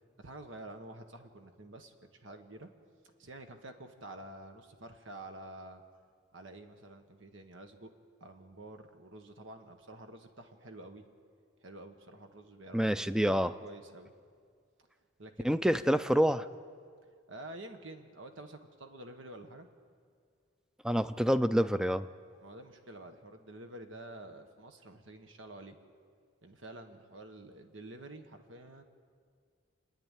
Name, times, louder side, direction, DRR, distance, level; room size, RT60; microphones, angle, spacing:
voice 1, 0.2-2.7 3.2-5.8 6.3-7.9 8.2-11.0 11.6-14.1 15.2-16.0 17.3-19.7 22.4-25.8 26.4-28.8, right 1 dB, 80° right, 6 dB, 1.4 m, -49 dB
voice 2, 12.7-13.5 15.4-16.5 20.8-22.1, equal, 5° right, 13 dB, 0.4 m, -27 dB
28.5 x 10.0 x 9.1 m, 2.1 s
head